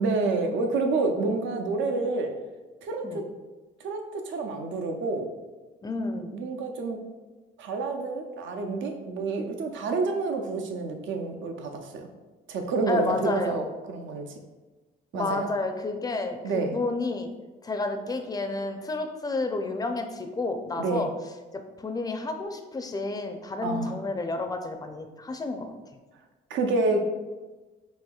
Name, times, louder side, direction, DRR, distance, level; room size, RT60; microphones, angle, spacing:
voice 1, 0.0-2.3 2.8-3.3 3.8-5.3 6.3-7.1 7.6-12.1 12.5-14.3 15.1-15.5 16.4-16.8 20.8-21.1 23.6-24.0 26.5-27.1, right 3 dB, 75° right, 4 dB, 0.5 m, -28 dB
voice 2, 5.8-6.3 12.9-13.6 15.1-17.3 17.6-21.1 21.8-25.7, left 3 dB, 20° left, 6 dB, 0.4 m, -30 dB
4.3 x 2.8 x 2.3 m, 1.2 s
cardioid pair, 90°, 20 cm